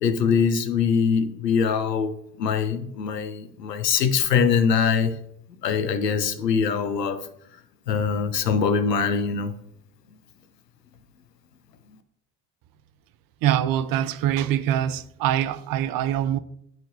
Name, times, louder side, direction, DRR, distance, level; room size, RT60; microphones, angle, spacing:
voice 1, 0.0-5.1 5.6-7.3 7.9-9.6, left 6 dB, 85° left, 0.7 m, -23 dB
voice 2, 13.4-16.4, right 11 dB, 45° right, 0.6 m, -24 dB
10.5 x 4.3 x 2.6 m
figure-of-eight pair, 55°, 48 cm